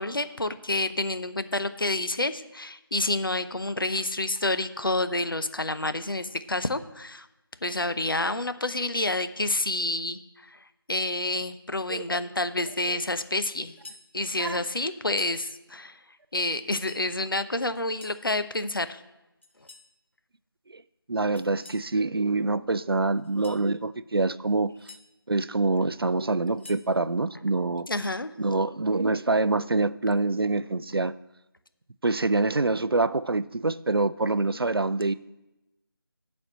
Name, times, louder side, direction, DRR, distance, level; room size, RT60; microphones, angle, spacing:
voice 1, 0.0-7.3 7.6-10.2 10.9-13.7 14.1-16.0 16.3-19.0 27.9-28.3, left 2 dB, 60° left, 0.7 m, -28 dB
voice 2, 11.9-12.2 12.9-13.0 14.4-14.6 20.7-20.8 21.1-24.7 25.3-27.9 28.4-31.1 32.0-35.1, right 3 dB, 70° right, 0.4 m, -25 dB
sound 1, 13.7-14.1 15.0-15.4 16.6-17.1 17.7-18.2 19.4-19.9 21.4-21.9 23.2-23.6 24.5-25.0 26.3-26.9, left 3 dB, 30° left, 0.8 m, -48 dB
9.5 x 4.3 x 7.4 m
figure-of-eight pair, 165°, 13 cm